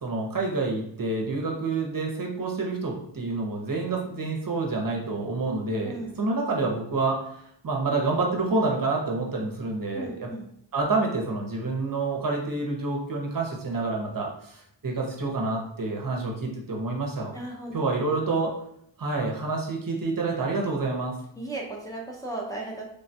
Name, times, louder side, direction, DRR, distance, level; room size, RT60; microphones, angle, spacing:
voice 1, 0.0-7.3 7.6-10.3 10.7-17.3 17.7-18.5 19.0-21.1, right 3 dB, 45° right, -1 dB, 0.7 m, -28 dB
voice 2, 9.9-10.5 17.3-17.7 21.4-22.9, right 2 dB, 10° left, -4 dB, 0.6 m, -35 dB
3.3 x 2.2 x 2.7 m, 0.70 s
wide cardioid pair, 90°, 46 cm